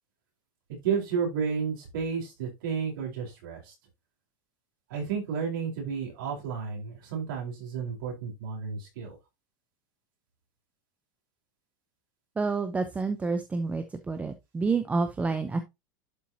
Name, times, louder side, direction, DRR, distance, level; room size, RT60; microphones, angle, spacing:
voice 1, 0.8-3.7 4.9-9.2, right 6 dB, 85° right, -1 dB, 4.3 m, -32 dB
voice 2, 12.4-15.6, right 4 dB, 10° right, 8 dB, 0.7 m, -29 dB
11.5 x 4.5 x 2.8 m, 0.22 s
supercardioid pair, 145°, 11 cm